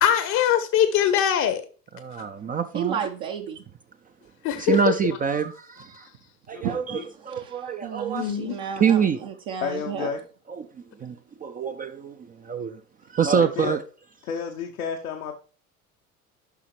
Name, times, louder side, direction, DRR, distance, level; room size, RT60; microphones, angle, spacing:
voice 1, 0.0-1.6 4.4-4.9 8.1-8.6, left 10 dB, 40° left, 0.8 m, -22 dB
voice 2, 1.9-3.0 4.6-6.1 6.5-8.3 8.8-9.2 11.0-12.8 13.1-13.8, right 7 dB, 20° right, 0.5 m, -25 dB
voice 3, 2.7-3.6 6.6-6.8 7.3-10.1, right 8 dB, 50° right, 0.9 m, -32 dB
voice 4, 6.5-7.1 9.6-10.2 13.3-13.8 14.2-15.3, left 6 dB, 75° left, 0.9 m, -31 dB
11.5 x 5.6 x 3.2 m
figure-of-eight pair, 65°, 43 cm